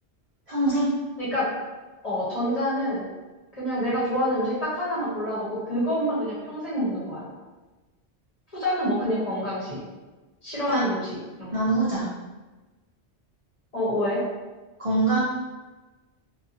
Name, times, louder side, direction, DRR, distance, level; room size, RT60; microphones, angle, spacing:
voice 1, 0.5-0.9 10.7-10.8 11.5-12.1 14.8-15.2, right 2 dB, 45° right, -8 dB, 0.4 m, -23 dB
voice 2, 1.2-1.5 2.0-3.0 3.5-7.2 8.5-9.8 10.4-11.1 11.4-11.5 13.7-14.2, equal, 35° left, -9 dB, 0.9 m, -27 dB
2.7 x 2.2 x 2.6 m, 1.2 s
omnidirectional pair, 1.2 m